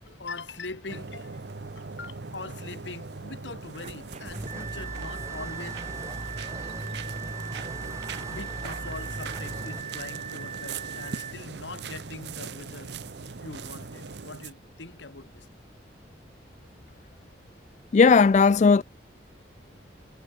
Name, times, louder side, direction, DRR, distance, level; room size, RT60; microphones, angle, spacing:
voice 1, 0.1-1.4 1.8-5.8 8.3-12.9 13.4-15.5, left 3 dB, 75° left, 2.2 m, -42 dB
sound 1, 0.9-14.5, right 4 dB, 65° right, 0.8 m, -40 dB
sound 2, 3.7-11.3, right 7 dB, 35° right, 2.9 m, -39 dB
sound 3, 4.3-9.8, right 1 dB, 15° right, 1.0 m, -39 dB
voice 2, 17.9-18.8, left 5 dB, 40° left, 0.3 m, -17 dB
head